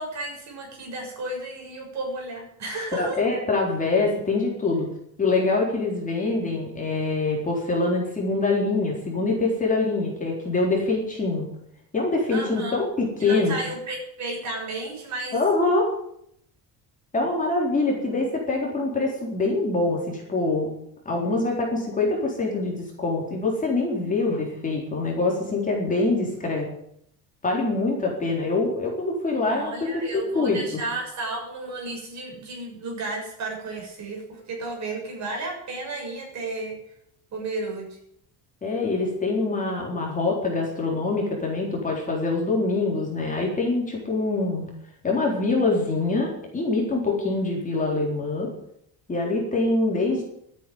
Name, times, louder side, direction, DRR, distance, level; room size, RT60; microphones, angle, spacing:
voice 1, 0.0-3.2 12.3-12.8 13.2-15.4 29.5-36.8 37.3-38.0, right 2 dB, 45° right, 0 dB, 6.9 m, -33 dB
voice 2, 2.9-4.9 5.2-11.5 11.9-13.5 15.3-15.9 17.1-20.7 21.1-26.7 27.4-30.6 38.6-44.6 45.0-48.5 49.1-50.2, left 3 dB, 20° left, -2 dB, 4.0 m, -24 dB
13.0 x 9.4 x 9.6 m, 0.73 s
cardioid pair, 165°, 40 cm